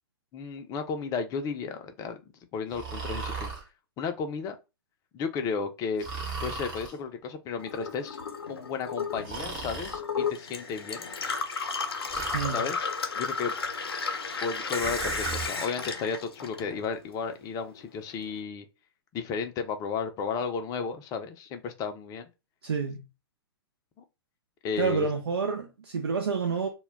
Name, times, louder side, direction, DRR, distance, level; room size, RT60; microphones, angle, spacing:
voice 1, 0.3-2.2 2.5-3.5 4.0-4.6 5.1-6.1 6.4-8.2 8.5-11.1 12.5-13.5 14.4-18.7 19.1-22.3 24.6-25.1, left 5 dB, 25° left, 0.5 m, -33 dB
Breathing, 2.7-3.6 6.0-7.0 9.2-10.0 12.1-12.6 14.8-15.5, right 4 dB, 30° right, 1.0 m, -36 dB
Gurgling / Water tap faucet / Sink (filling or washing), 7.6-17.1 17.4-18.3, left 5 dB, 80° left, 0.6 m, -33 dB
voice 2, 22.6-23.0 24.8-26.7, right 5 dB, 80° right, 0.5 m, -28 dB
2.1 x 2.1 x 3.4 m
figure-of-eight pair, 110°, 13 cm